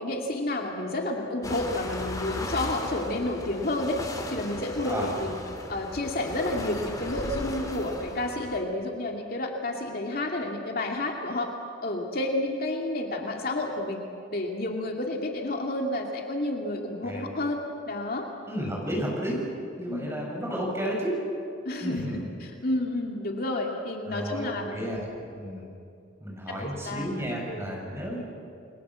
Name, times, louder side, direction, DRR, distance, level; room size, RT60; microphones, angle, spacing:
voice 1, 0.0-4.0 4.3-5.4 5.7-11.5 11.8-14.0 14.3-18.3 19.9-20.1 21.6-24.8 26.5-27.1 27.5-27.7, left 2 dB, 50° left, 1 dB, 2.4 m, -30 dB
sound 1, 1.4-8.6, left 1 dB, 20° left, 2.6 m, -36 dB
voice 2, 18.5-19.4 19.8-21.2 21.8-22.2 24.1-25.7 26.2-28.2, equal, 15° right, -2 dB, 7.0 m, -32 dB
29.5 x 22.5 x 7.6 m, 2.5 s
head